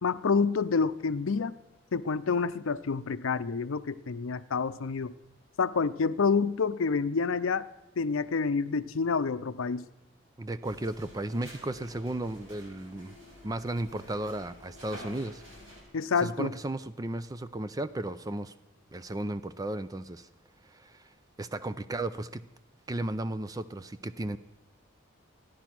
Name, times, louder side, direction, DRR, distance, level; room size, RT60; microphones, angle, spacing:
voice 1, 0.0-1.5 1.9-5.1 5.6-7.7 8.0-9.8 15.9-16.5, left 5 dB, 85° left, 13 dB, 0.6 m, -28 dB
voice 2, 10.4-13.1 13.4-15.4 16.2-18.5 18.9-20.3 20.7-21.1 21.4-22.4 22.9-24.4, right 1 dB, 20° right, 13 dB, 0.4 m, -34 dB
sound 1, 10.6-15.8, equal, 75° right, 4.8 m, -49 dB
15.0 x 10.0 x 6.0 m, 0.94 s
head